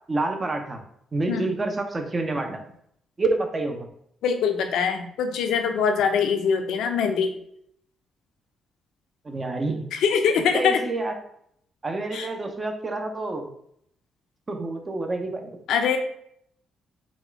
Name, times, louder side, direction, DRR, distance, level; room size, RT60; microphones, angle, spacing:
voice 1, 0.1-0.8 1.1-2.6 3.2-3.9 9.2-9.9 10.5-11.2 11.8-13.5 14.5-15.5, right 2 dB, 30° right, 5 dB, 0.7 m, -28 dB
voice 2, 4.2-7.3 9.9-10.8 12.1-12.3 15.7-16.0, left 6 dB, 80° left, 5 dB, 0.6 m, -23 dB
4.2 x 2.4 x 4.4 m, 0.69 s
cardioid pair, 90°, 0 cm